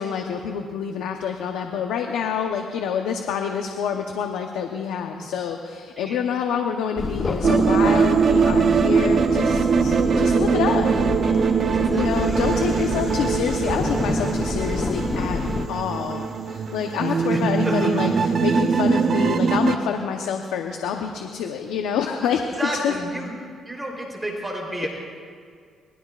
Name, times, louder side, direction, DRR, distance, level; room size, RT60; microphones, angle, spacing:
voice 1, 0.0-10.9 11.9-15.4 15.7-22.9, left 7 dB, 90° left, 4 dB, 0.9 m, -27 dB
sound 1, 7.0-15.7, left 3 dB, 30° left, 0.7 m, -28 dB
sound 2, 7.4-19.8, right 6 dB, 50° right, 0.8 m, -21 dB
voice 2, 11.7-12.8 17.2-18.1 22.5-23.3 23.7-24.9, right 1 dB, 10° right, -1 dB, 3.6 m, -31 dB
26.0 x 21.0 x 2.5 m, 2.1 s
cardioid pair, 90°, 0 cm